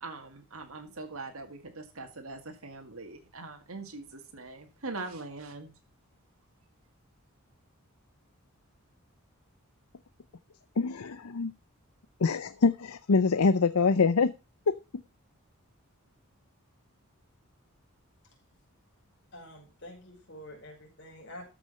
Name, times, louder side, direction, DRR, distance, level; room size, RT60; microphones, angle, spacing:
voice 1, 0.0-5.7, right 3 dB, 80° right, 5 dB, 2.0 m, -42 dB
voice 2, 10.8-11.5 12.2-14.3 14.7-14.8, left 4 dB, 85° left, 13 dB, 0.6 m, -25 dB
voice 3, 19.3-21.5, left 1 dB, 55° left, 0 dB, 5.2 m, -47 dB
13.5 x 6.1 x 5.6 m, 0.29 s
head